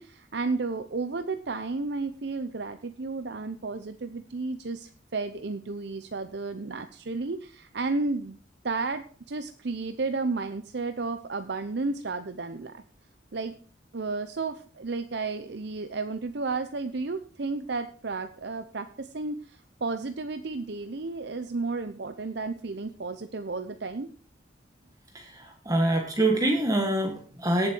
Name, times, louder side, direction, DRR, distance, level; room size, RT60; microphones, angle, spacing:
voice 1, 0.0-8.4 8.6-12.8 13.3-13.5 13.9-24.1, right 3 dB, 60° right, 9 dB, 0.7 m, -32 dB
voice 2, 25.1-27.7, right 1 dB, 20° right, 2 dB, 1.6 m, -25 dB
18.0 x 7.4 x 4.6 m, 0.42 s
head